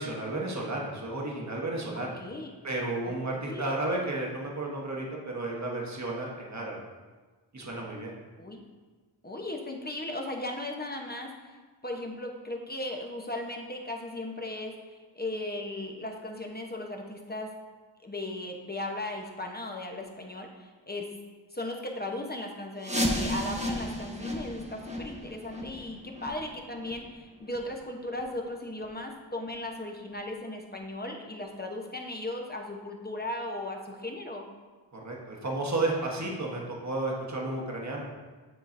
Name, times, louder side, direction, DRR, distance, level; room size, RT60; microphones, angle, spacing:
voice 1, 0.0-2.1 2.6-6.8 7.5-8.1 34.9-38.1, right 2 dB, 35° right, -2 dB, 1.3 m, -32 dB
voice 2, 1.9-2.5 3.1-3.2 3.4-3.7 8.4-8.6 9.2-11.3 11.8-17.5 18.0-21.1 21.5-34.5, left 1 dB, 20° left, 2 dB, 0.9 m, -37 dB
sound 1, 22.8-28.4 28.7-28.9 29.4-29.5 30.1-30.2 30.7-30.8, left 1 dB, 15° right, 0.9 m, -34 dB
9.8 x 3.8 x 2.6 m, 1.4 s
cardioid pair, 45°, 45 cm